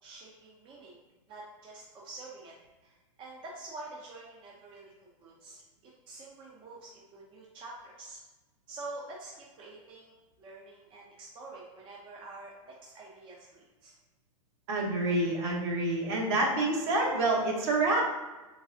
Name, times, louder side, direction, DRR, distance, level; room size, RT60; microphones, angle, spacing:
voice 1, 0.0-1.0 1.3-2.5 2.8-8.2 8.7-13.9, right 2 dB, 30° right, -4 dB, 0.8 m, -47 dB
voice 2, 14.7-18.0, right 2 dB, 50° right, -2 dB, 1.3 m, -27 dB
4.7 x 3.9 x 2.6 m, 1.2 s
hypercardioid pair, 105°, 17 cm